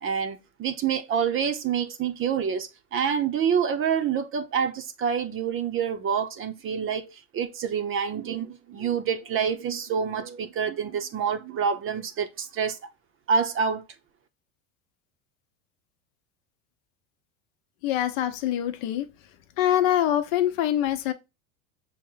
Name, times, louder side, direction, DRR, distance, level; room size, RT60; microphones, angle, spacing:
voice 1, 0.0-12.8 13.3-13.8, right 7 dB, 30° right, 0.6 m, -27 dB
voice 2, 17.8-19.1 19.6-21.1, left 11 dB, 65° left, 0.8 m, -24 dB
6.0 x 2.1 x 3.8 m
supercardioid pair, 105°, 43 cm